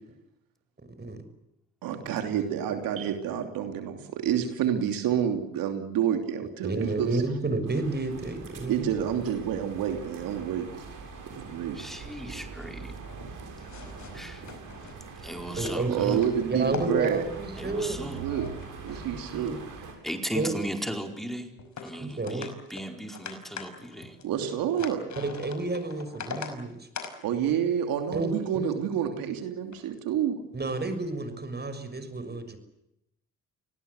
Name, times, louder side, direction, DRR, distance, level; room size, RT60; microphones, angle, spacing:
voice 1, 1.8-7.2 8.7-10.7 11.4-11.8 15.9-17.2 18.1-18.5 18.8-19.8 24.2-25.0 27.2-30.4, right 9 dB, 80° right, 6 dB, 3.1 m, -28 dB
voice 2, 6.6-8.9 15.6-16.2 16.5-18.0 18.9-19.6 20.3-20.5 22.0-22.5 25.2-26.9 28.1-28.7 30.5-32.6, right 3 dB, 30° right, 10 dB, 6.3 m, -31 dB
sound 1, 7.7-19.9, right 4 dB, 65° right, 7.8 m, -43 dB
voice 3, 11.7-13.0 14.1-14.5 15.2-16.2 17.5-18.3 20.0-21.5 21.8-24.2, equal, ahead, 4 dB, 4.6 m, -37 dB
sound 2, 13.0-14.9 15.5-16.3 16.6-17.5 17.9-19.7 20.0-20.7 21.6-21.9 22.2-26.5 26.9-27.1 28.9-29.1 29.7-30.0, left 6 dB, 60° left, 5.5 m, -42 dB
27.5 x 18.5 x 8.2 m, 0.85 s
supercardioid pair, 60°, 34 cm